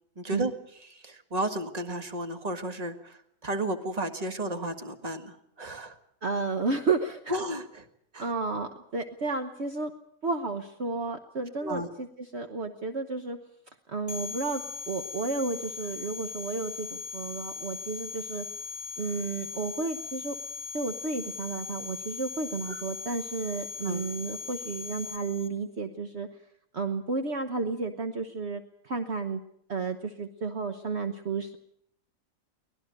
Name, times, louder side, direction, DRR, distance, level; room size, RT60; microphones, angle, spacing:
voice 1, 0.2-0.5 0.9-6.0 7.3-7.9 8.1-8.3 11.6-11.9 22.7-22.8 23.8-24.0, right 1 dB, 30° right, 7 dB, 1.8 m, -33 dB
voice 2, 6.2-7.3 8.2-9.9 10.2-12.1 12.3-13.4 13.9-18.4 19.0-20.3 20.7-26.3 26.7-29.4 29.7-31.6, right 4 dB, 50° right, 6 dB, 1.4 m, -32 dB
sound 1, 14.1-25.5, left 5 dB, 25° left, 2.2 m, -39 dB
24.0 x 18.5 x 6.7 m, 0.70 s
omnidirectional pair, 1.5 m